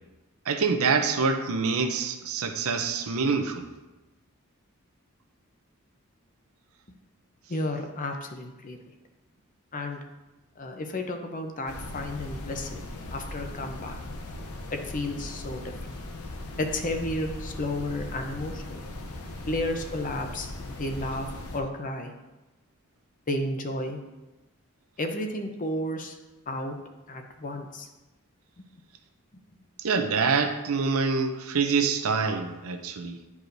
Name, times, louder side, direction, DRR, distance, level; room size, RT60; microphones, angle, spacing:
voice 1, 0.5-3.7 29.8-33.2, right 5 dB, 75° right, 6 dB, 0.6 m, -26 dB
voice 2, 7.5-8.8 9.7-10.0 10.6-12.8 13.1-14.0 14.7-15.6 16.6-18.8 19.5-20.5 20.8-21.3 21.5-22.1 23.3-24.0 25.0-26.2 26.5-26.8 27.1-27.9, left 1 dB, 40° left, 5 dB, 0.6 m, -32 dB
sound 1, 11.7-21.6, left 2 dB, 85° left, 0.7 m, -39 dB
10.0 x 4.7 x 2.6 m, 1.1 s
head